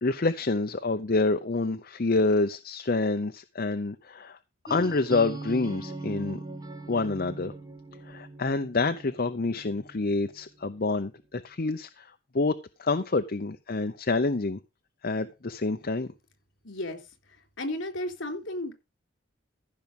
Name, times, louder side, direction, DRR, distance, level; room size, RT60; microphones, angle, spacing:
voice 1, 0.0-4.4 4.7-6.4 6.9-7.5 8.1-12.1 12.3-14.6 15.0-16.1, left 3 dB, 45° left, 0.7 m, -27 dB
sound 1, 4.7-10.4, right 2 dB, 20° right, 1.9 m, -40 dB
voice 2, 16.6-17.0 17.6-18.7, left 1 dB, 65° left, 3.7 m, -33 dB
15.0 x 6.0 x 5.2 m
head